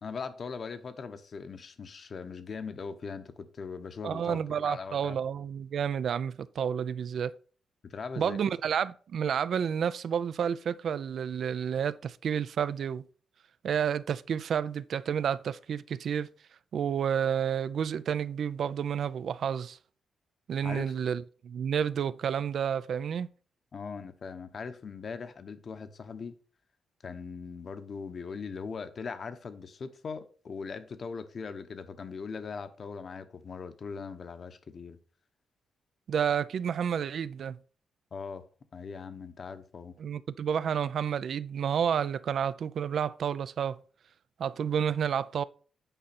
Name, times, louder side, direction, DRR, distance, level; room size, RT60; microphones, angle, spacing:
voice 1, 0.0-5.2 7.8-8.4 20.6-20.9 23.7-26.4 27.0-35.0 38.1-38.4 38.7-39.9, left 5 dB, 45° left, 0.9 m, -40 dB
voice 2, 4.0-7.3 8.2-13.0 13.6-16.3 16.7-19.8 20.5-23.3 36.1-37.6 40.0-43.8 44.4-45.4, right 8 dB, 60° right, 0.4 m, -30 dB
9.1 x 5.6 x 4.2 m
cardioid pair, 125°, 0 cm